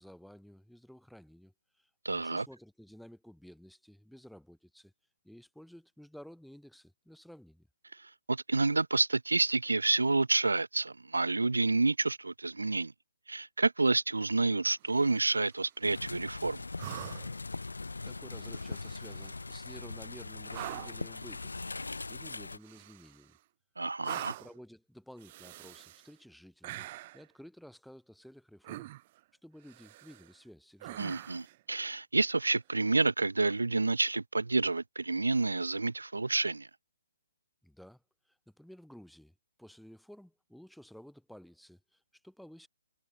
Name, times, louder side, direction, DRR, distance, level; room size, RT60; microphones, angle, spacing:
voice 1, 0.0-4.9 5.2-7.7 18.0-21.6 22.1-23.4 24.0-26.9 27.1-28.9 29.4-31.1 37.6-42.7, equal, ahead, 5.6 m, -53 dB
voice 2, 2.0-2.5 8.3-12.9 13.3-16.6 23.8-24.3 31.0-36.7, right 3 dB, 70° right, 1.9 m, -29 dB
sound 1, 14.8-15.6 16.8-17.5 18.5-19.2 20.5-21.1 22.6-23.4 24.0-24.6 25.2-26.1 26.6-27.3 28.6-29.2 29.7-30.3 30.8-31.6 33.4-33.5, right 17 dB, 30° right, 3.6 m, -44 dB
sound 2, 15.8-22.6, left 3 dB, 70° left, 4.8 m, -41 dB
figure-of-eight pair, 130°, 0 cm